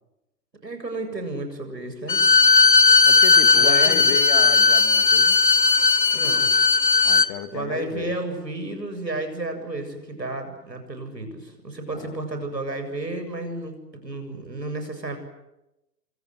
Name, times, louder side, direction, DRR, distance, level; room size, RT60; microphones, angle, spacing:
voice 1, 0.6-2.3 3.6-4.0 6.1-6.5 7.5-15.2, right 2 dB, 85° right, 6 dB, 7.6 m, -32 dB
Bowed string instrument, 2.1-7.3, left 4 dB, 80° left, 1.5 m, -16 dB
voice 2, 3.1-5.4 7.0-8.1 11.9-12.2, left 11 dB, 30° left, 10 dB, 2.1 m, -33 dB
27.5 x 26.5 x 7.8 m, 0.91 s
figure-of-eight pair, 125°, 49 cm